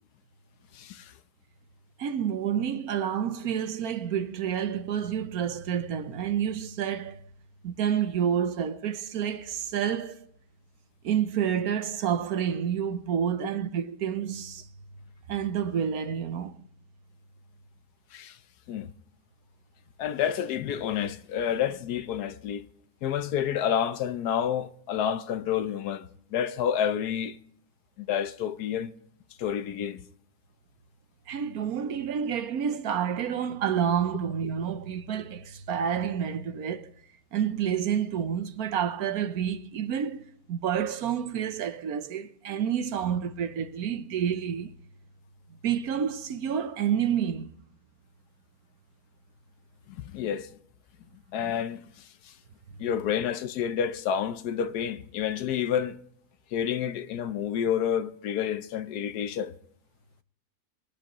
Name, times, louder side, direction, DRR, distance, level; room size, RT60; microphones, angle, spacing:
voice 1, 0.7-1.1 13.4-13.5 18.1-18.4 18.7-18.9 20.0-22.7 23.0-27.4 28.0-28.9 29.4-30.0 49.9-50.5 51.3-51.8 52.8-56.0 56.5-59.5, left 9 dB, 85° left, 1.3 m, -29 dB
voice 2, 2.0-7.2 7.6-10.3 11.0-14.7 15.3-16.5 31.3-36.9 37.3-44.7 45.5-47.5, right 8 dB, 75° right, 1.3 m, -29 dB
22.0 x 11.0 x 3.0 m
omnidirectional pair, 1.6 m